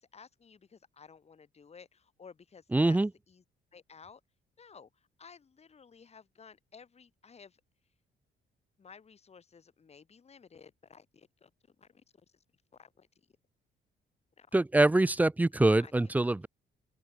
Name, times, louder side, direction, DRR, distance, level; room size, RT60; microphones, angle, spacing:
voice 1, 0.0-3.0 3.3-3.4 3.7-4.2 4.6-7.6 8.8-12.4 12.7-13.3 14.4-14.6 15.7-15.9, left 6 dB, 30° left, 1.2 m, -55 dB
voice 2, 2.7-3.1 14.5-16.5, right 2 dB, 10° right, 0.3 m, -24 dB
open air
cardioid pair, 90°, 20 cm